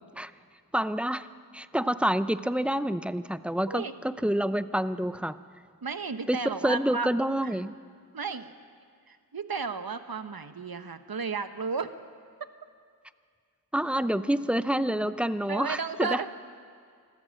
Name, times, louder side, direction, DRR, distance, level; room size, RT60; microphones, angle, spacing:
voice 1, 0.7-1.3 1.5-5.4 6.3-6.4 6.6-7.8 13.7-16.3, right 1 dB, 5° right, 13 dB, 0.6 m, -28 dB
voice 2, 5.8-7.1 7.4-7.6 8.1-8.5 9.1-11.9 15.5-16.3, right 5 dB, 70° right, 10 dB, 1.1 m, -33 dB
26.0 x 14.0 x 7.7 m, 2.1 s
wide cardioid pair, 45°, 38 cm